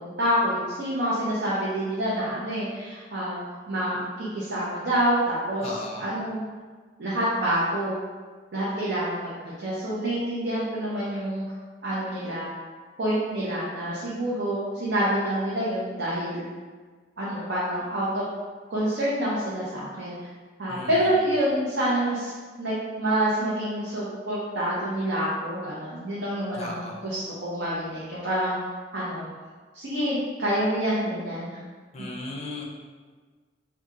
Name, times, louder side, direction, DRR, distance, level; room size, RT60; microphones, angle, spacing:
voice 1, 0.0-5.7 6.0-6.4 7.0-8.0 8.5-11.4 11.8-12.5 13.0-16.4 17.2-18.2 18.7-20.2 20.6-22.3 22.6-28.5 28.9-29.3 29.7-31.5 32.0-32.1, right 1 dB, 75° right, -8 dB, 0.7 m, -27 dB
voice 2, 5.6-6.1 20.7-21.1 26.6-27.0 31.9-32.7, left 2 dB, 35° left, 0 dB, 0.4 m, -36 dB
2.8 x 2.3 x 3.7 m, 1.5 s
head